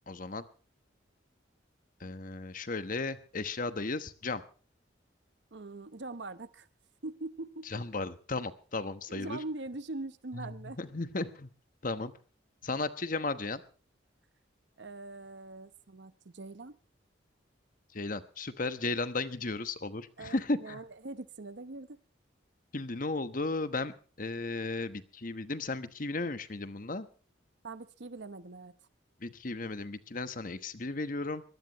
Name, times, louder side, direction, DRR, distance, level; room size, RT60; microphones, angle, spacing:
voice 1, 0.1-0.4 2.0-4.4 7.7-9.4 10.3-11.5 11.8-12.1 12.6-13.6 17.9-20.8 22.7-27.1 29.2-31.4, left 3 dB, 45° left, 12 dB, 1.1 m, -35 dB
voice 2, 5.5-6.7 7.0-7.7 9.1-10.8 14.8-16.7 20.2-22.0 27.6-28.7, right 2 dB, 65° right, 14 dB, 0.9 m, -42 dB
23.5 x 17.5 x 3.1 m, 0.38 s
head